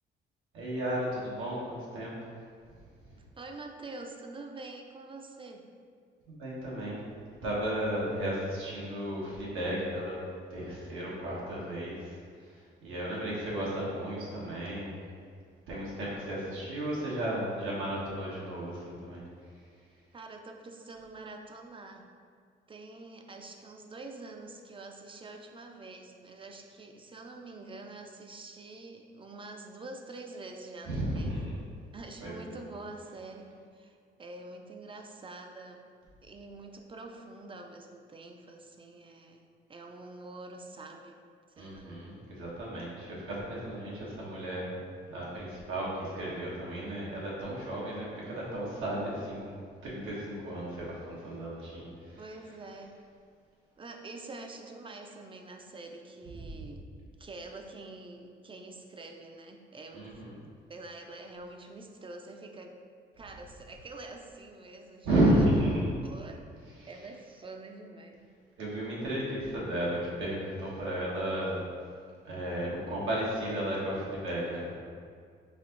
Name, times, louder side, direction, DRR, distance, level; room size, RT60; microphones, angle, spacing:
voice 1, 0.5-2.1 6.3-7.0 7.4-10.2 10.5-15.0 15.7-19.2 30.8-31.6 32.2-32.5 41.6-44.7 45.1-52.2 56.4-56.6 59.9-60.4 65.0-65.9 66.8-66.9 68.6-71.6 72.2-74.8, right 1 dB, 90° right, -6 dB, 1.4 m, -33 dB
voice 2, 3.4-5.7 20.1-22.1 22.7-31.4 31.9-35.9 36.2-41.2 41.6-41.9 52.2-53.0 53.8-56.9 57.2-60.2 60.7-62.8 63.2-65.1 66.0-66.5 66.9-68.3, right 2 dB, 25° right, 3 dB, 0.5 m, -46 dB
5.0 x 2.7 x 3.8 m, 2.1 s
cardioid pair, 90°, 20 cm